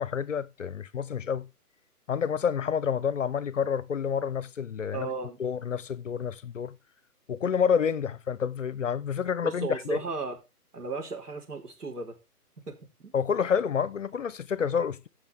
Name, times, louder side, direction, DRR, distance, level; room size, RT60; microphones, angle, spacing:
voice 1, 0.0-1.5 2.1-5.1 5.4-6.8 7.3-10.0 13.1-15.1, left 7 dB, 55° left, 0.8 m, -28 dB
voice 2, 4.9-5.4 9.4-10.4 10.7-12.1 12.7-12.8 13.0-13.1, right 4 dB, 75° right, 4.7 m, -34 dB
15.5 x 6.5 x 3.6 m
hypercardioid pair, 155°, 46 cm